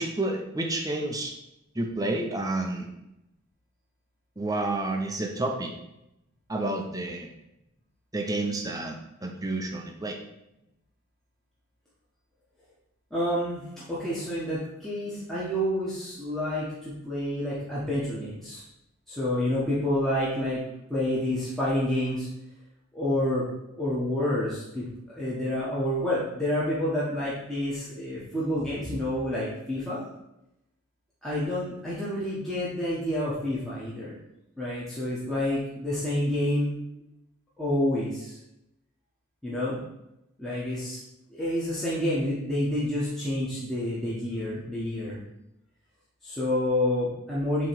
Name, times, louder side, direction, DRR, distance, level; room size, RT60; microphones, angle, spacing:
voice 1, 0.0-1.3 1.7-2.9 4.4-5.7 6.5-7.3 8.1-8.9 9.2-10.2, right 2 dB, 15° right, 2 dB, 0.7 m, -30 dB
voice 2, 13.1-18.6 19.1-20.6 20.9-22.3 22.9-23.4 23.7-30.0 31.2-34.1 34.6-36.8 37.6-38.4 39.4-39.8 40.4-41.0 41.3-45.2 46.2-47.7, left 1 dB, ahead, -9 dB, 1.2 m, -28 dB
7.4 x 3.2 x 4.7 m, 0.87 s
head